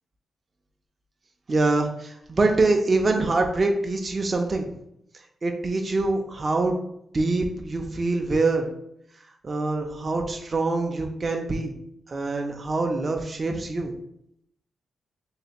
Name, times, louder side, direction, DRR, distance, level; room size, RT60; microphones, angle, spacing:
voice 1, 1.5-4.7 5.4-6.8 7.1-8.7 9.4-11.7 12.1-13.9, right 3 dB, 35° right, 3 dB, 0.3 m, -24 dB
3.2 x 2.5 x 2.8 m, 0.74 s
wide cardioid pair, 120°, 0 cm